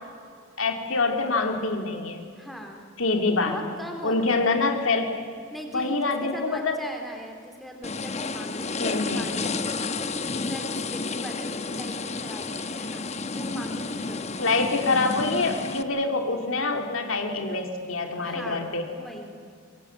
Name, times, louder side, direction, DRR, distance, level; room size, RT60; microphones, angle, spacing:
voice 1, 0.6-2.2 3.0-3.5 4.0-5.2 5.7-6.8 8.8-9.2 14.4-18.9, left 3 dB, 75° left, 4 dB, 2.4 m, -25 dB
voice 2, 2.4-2.8 3.4-4.4 5.5-10.2 10.5-13.1 13.3-14.4 18.2-19.3, equal, ahead, 2 dB, 3.7 m, -39 dB
sound 1, 7.8-15.8, left 3 dB, 30° left, 1.0 m, -31 dB
24.5 x 22.0 x 9.2 m, 2.2 s
head